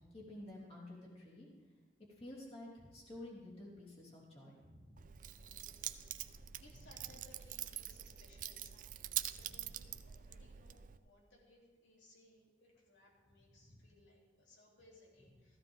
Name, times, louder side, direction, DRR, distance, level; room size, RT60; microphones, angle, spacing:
voice 1, 0.1-1.5 2.2-5.0 13.7-13.8, left 1 dB, 30° left, -5 dB, 3.1 m, -51 dB
Keys jangling, 5.0-11.0, right 12 dB, 45° right, 0.5 m, -45 dB
voice 2, 5.4-15.6, left 1 dB, 75° left, -3 dB, 3.0 m, -65 dB
15.5 x 15.0 x 3.6 m, 1.4 s
head